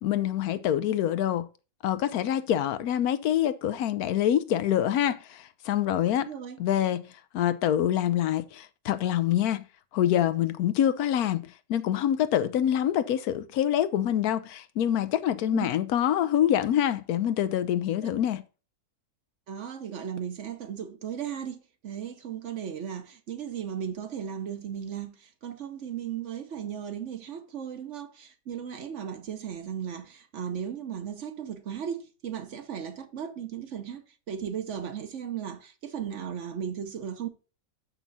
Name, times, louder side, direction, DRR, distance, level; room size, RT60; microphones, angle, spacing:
voice 1, 0.0-1.5 1.8-6.3 6.6-7.1 7.3-9.6 9.9-18.4, left 11 dB, 80° left, 1.1 m, -26 dB
voice 2, 6.2-6.6 15.5-15.7 18.0-18.1 19.5-37.3, right 8 dB, 60° right, 1.0 m, -36 dB
7.2 x 5.7 x 4.0 m
omnidirectional pair, 1.6 m